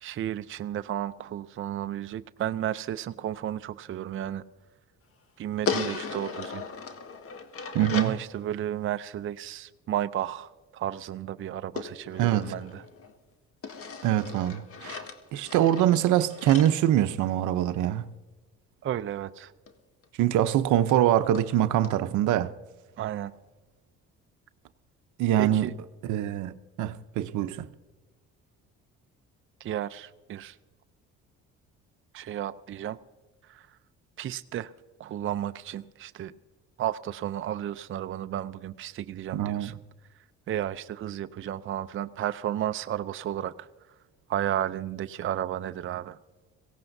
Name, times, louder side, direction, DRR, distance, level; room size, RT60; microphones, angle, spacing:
voice 1, 0.0-4.4 5.4-6.7 7.9-12.8 14.9-15.0 18.8-19.5 23.0-23.3 25.4-25.7 29.6-30.6 32.1-33.0 33.5-33.7 34.2-34.7 35.0-36.3 36.8-39.8 40.5-43.7 44.3-46.2, right 11 dB, 40° right, 0.5 m, -33 dB
sound 1, 5.6-8.2 11.8-13.2 13.6-17.7 19.7-19.8 20.0-20.1 20.5-20.6 20.9-21.0 21.3-21.5 21.8-22.0, left 5 dB, 50° left, 1.7 m, -37 dB
voice 2, 7.7-8.1 12.2-12.5 14.0-15.0 15.3-18.1 20.2-22.5 25.2-25.7 26.0-27.7 39.3-39.7, right 12 dB, 75° right, 0.8 m, -24 dB
22.5 x 17.0 x 2.7 m
supercardioid pair, 80°, 30 cm